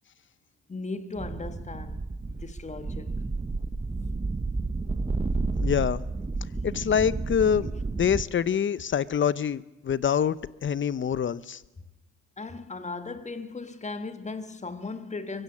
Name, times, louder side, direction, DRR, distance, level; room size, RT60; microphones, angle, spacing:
voice 1, 0.7-3.1 12.4-15.4, left 3 dB, 25° left, 1.7 m, -37 dB
sound 1, 1.2-8.2, right 3 dB, 20° right, 1.1 m, -31 dB
voice 2, 5.6-6.0 6.6-7.7 8.0-11.6, left 8 dB, 40° left, 0.8 m, -25 dB
24.0 x 16.0 x 7.4 m
cardioid pair, 90°, 30 cm